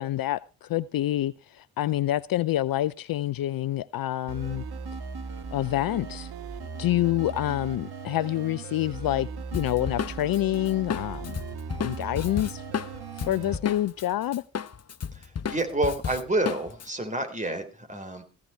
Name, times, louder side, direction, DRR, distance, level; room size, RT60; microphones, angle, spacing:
voice 1, 0.0-4.6 5.5-6.3 6.8-11.4 11.7-12.6 13.2-14.4, left 14 dB, 50° left, 0.6 m, -27 dB
sound 1, 4.3-13.6, right 5 dB, 55° right, 1.8 m, -38 dB
Drum kit, 9.5-14.1 14.3-16.9, left 7 dB, 35° left, 0.9 m, -33 dB
voice 2, 15.1-18.2, right 2 dB, 15° right, 3.8 m, -29 dB
15.5 x 11.0 x 4.5 m
hypercardioid pair, 40°, 44 cm